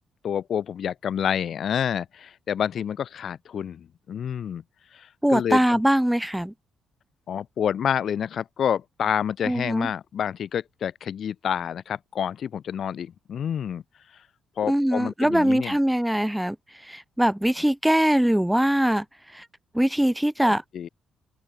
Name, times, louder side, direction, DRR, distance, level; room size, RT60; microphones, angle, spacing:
voice 1, 0.2-4.6 4.9-5.8 7.3-13.8 14.6-15.8 20.4-20.9, left 8 dB, 45° left, 1.3 m, -28 dB
voice 2, 5.2-6.5 9.5-9.9 14.7-16.6 16.9-19.0 19.3-19.4 19.7-20.6, equal, 5° right, 1.5 m, -22 dB
open air
cardioid pair, 175°, 0 cm